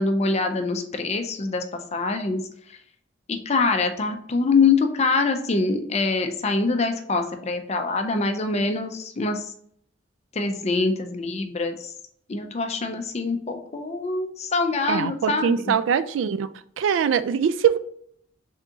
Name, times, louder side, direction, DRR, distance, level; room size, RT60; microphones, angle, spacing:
voice 1, 0.0-1.6 1.9-2.4 3.3-9.5 10.4-11.9 12.3-15.7, left 3 dB, 35° left, 6 dB, 0.5 m, -24 dB
voice 2, 14.9-16.5 16.8-17.8, right 7 dB, 90° right, 13 dB, 0.3 m, -22 dB
3.8 x 3.5 x 2.8 m, 0.65 s
head